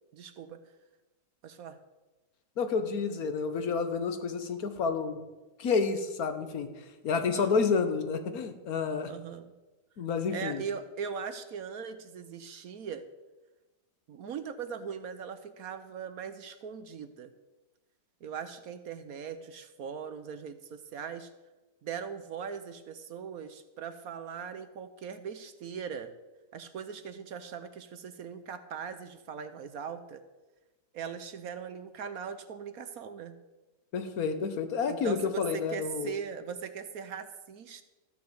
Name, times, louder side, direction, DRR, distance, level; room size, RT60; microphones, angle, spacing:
voice 1, 0.1-0.6 1.4-1.8 7.1-7.6 9.1-9.5 10.3-13.0 14.1-17.3 18.2-21.3 21.8-26.1 26.5-30.2 30.9-33.4 34.9-37.8, right 7 dB, 60° right, 10 dB, 1.1 m, -40 dB
voice 2, 2.6-5.2 5.6-6.7 7.0-9.1 10.0-10.6 33.9-36.1, left 5 dB, 60° left, 8 dB, 1.6 m, -29 dB
14.0 x 6.7 x 7.9 m, 1.1 s
omnidirectional pair, 1.8 m